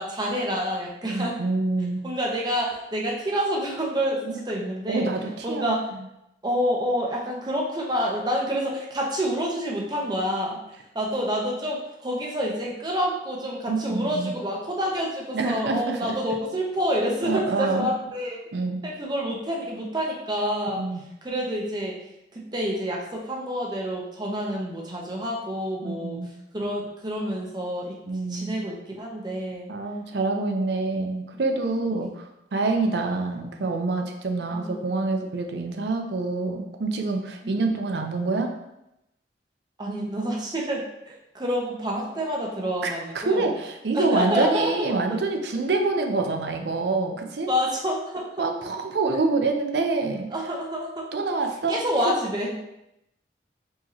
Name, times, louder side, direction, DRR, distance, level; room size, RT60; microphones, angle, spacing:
voice 1, 0.0-1.4 2.0-5.1 5.4-5.8 6.4-10.6 10.9-18.4 18.8-20.8 21.2-21.9 22.3-26.2 26.5-29.7 34.5-35.1 39.8-43.5 43.9-45.2 47.5-48.4 50.3-51.4 51.7-52.6, equal, 25° right, -2 dB, 0.7 m, -28 dB
voice 2, 1.1-2.0 4.2-4.4 4.9-5.7 13.7-14.3 15.3-16.2 17.2-17.9 18.5-18.8 20.8-21.0 25.8-26.3 28.1-28.6 29.7-38.5 42.8-47.5 48.4-50.3 51.1-51.8 52.1-52.2, right 3 dB, 75° right, 4 dB, 0.5 m, -26 dB
4.6 x 2.9 x 3.0 m, 0.86 s
head